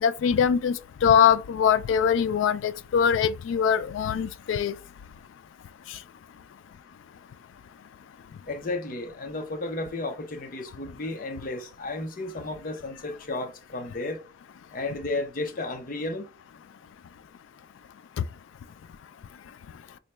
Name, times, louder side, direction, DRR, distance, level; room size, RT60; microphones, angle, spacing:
voice 1, 0.0-0.8 1.0-4.7, left 7 dB, 90° left, 0.3 m, -22 dB
voice 2, 8.5-14.2 14.7-16.3, left 2 dB, 45° left, 0.6 m, -33 dB
4.0 x 2.2 x 3.1 m
head